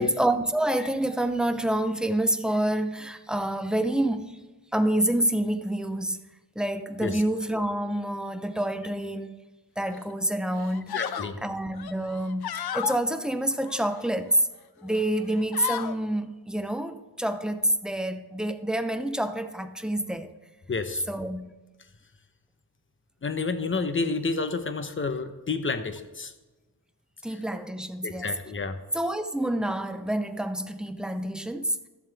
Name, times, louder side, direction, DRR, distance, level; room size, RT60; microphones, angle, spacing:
voice 1, 0.0-4.4 4.7-6.2 6.6-9.4 9.8-14.5 14.8-20.3 21.1-21.6 27.2-28.3 28.9-31.8, right 1 dB, ahead, 0.6 m, -28 dB
sound 1, 9.9-10.1 10.6-11.3 11.8-13.0 13.6-14.4 14.9-15.1 15.3-16.0, left 9 dB, 70° left, 0.6 m, -34 dB
voice 2, 10.9-11.4 20.7-21.0 23.2-26.3 28.0-28.8, left 4 dB, 30° left, 0.9 m, -30 dB
12.5 x 7.4 x 3.4 m
wide cardioid pair, 90°, 39 cm